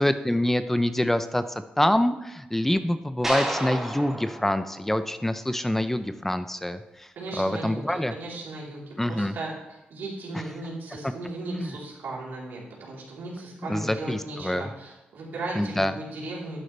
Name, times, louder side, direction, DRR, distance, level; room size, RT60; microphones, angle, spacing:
voice 1, 0.0-7.1 7.3-8.1 9.0-9.3 11.6-11.7 13.6-14.7 15.6-15.9, left 1 dB, 10° left, 10 dB, 0.6 m, -26 dB
sound 1, 3.2-5.6, right 1 dB, 10° right, 3.1 m, -32 dB
voice 2, 7.1-9.5 9.9-16.6, right 2 dB, 85° right, -4 dB, 3.7 m, -36 dB
11.5 x 9.3 x 3.3 m, 1.0 s
cardioid pair, 85°, 3 cm